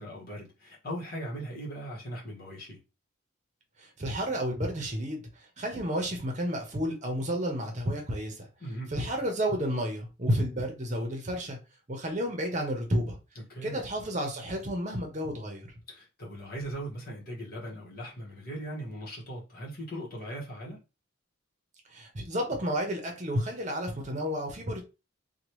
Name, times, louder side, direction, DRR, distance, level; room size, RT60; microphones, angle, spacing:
voice 1, 0.0-2.8 8.6-9.0 13.3-13.9 15.9-20.8, right 1 dB, 45° left, 1.2 m, -39 dB
voice 2, 4.0-5.2 5.6-8.5 8.9-11.6 11.9-13.2 13.6-15.7 21.9-24.8, equal, 35° right, 0.8 m, -31 dB
2.9 x 2.3 x 3.0 m
head